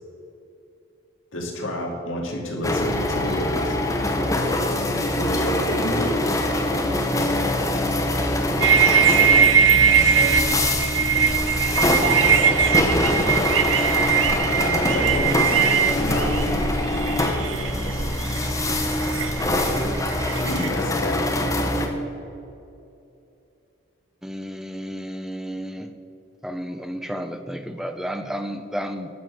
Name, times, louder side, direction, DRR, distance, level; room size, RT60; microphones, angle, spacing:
voice 1, 1.3-3.7 5.2-6.2 14.6-15.6 15.9-16.3 20.3-21.2, equal, 80° left, 0 dB, 2.1 m, -29 dB
sound 1, 2.6-21.9, left 1 dB, 15° left, 0.8 m, -24 dB
sound 2, 8.6-20.7, right 7 dB, 80° right, 0.7 m, -21 dB
voice 2, 9.6-10.7 11.7-13.1, equal, 35° right, -2 dB, 2.2 m, -33 dB
voice 3, 24.2-25.9 26.4-29.1, equal, ahead, 8 dB, 0.5 m, -32 dB
11.0 x 6.2 x 6.1 m, 2.6 s
head